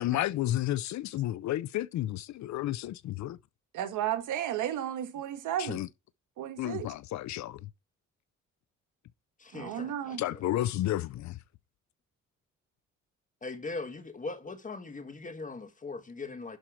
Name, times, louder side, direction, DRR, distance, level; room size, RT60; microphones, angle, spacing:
voice 1, 0.0-3.4 5.6-5.9 6.6-7.7 10.2-11.4, left 14 dB, 70° left, 0.6 m, -32 dB
voice 2, 3.7-5.8 6.4-6.9 9.5-10.2, right 11 dB, 85° right, 1.4 m, -33 dB
voice 3, 9.4-10.4 13.4-16.6, left 3 dB, 25° left, 1.5 m, -40 dB
11.5 x 4.4 x 5.0 m
cardioid pair, 90°, 30 cm